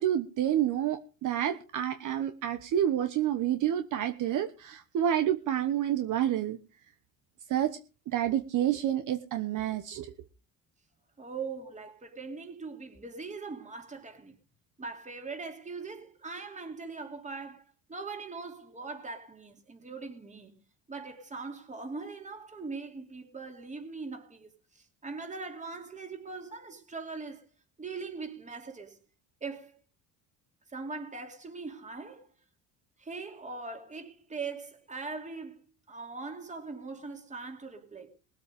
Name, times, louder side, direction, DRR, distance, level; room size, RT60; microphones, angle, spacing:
voice 1, 0.0-6.6 7.5-7.8 8.1-10.1, right 11 dB, 55° right, 1.2 m, -29 dB
voice 2, 11.2-14.3 14.8-17.6 17.9-20.5 20.9-27.5 27.8-29.0 29.4-29.8 30.7-32.3 33.0-35.6 35.9-38.1, right 4 dB, 20° right, 2.8 m, -41 dB
20.0 x 8.2 x 5.2 m
cardioid pair, 145°, 38 cm